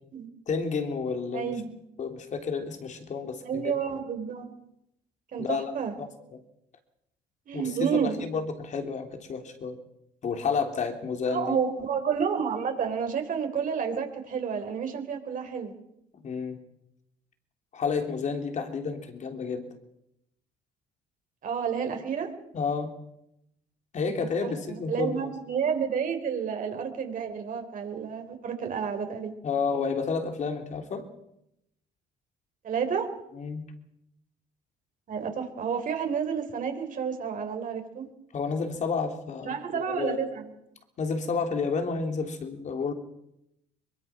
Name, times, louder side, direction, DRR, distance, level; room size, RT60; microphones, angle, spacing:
voice 1, 0.5-1.5 2.0-3.7 5.4-5.7 6.0-6.4 7.5-9.8 10.2-11.6 16.2-16.6 17.7-19.7 22.5-22.9 23.9-25.3 29.4-31.0 33.4-33.6 38.3-40.2 41.0-42.9, left 5 dB, 45° left, 5 dB, 3.4 m, -30 dB
voice 2, 1.3-1.7 3.5-4.5 5.3-5.9 7.5-8.2 11.3-15.7 21.4-22.3 24.0-24.1 24.4-29.3 32.6-33.1 35.1-38.1 39.4-40.5, right 7 dB, 50° right, 5 dB, 3.9 m, -30 dB
23.0 x 22.0 x 6.1 m, 0.82 s
cardioid pair, 110°, 17 cm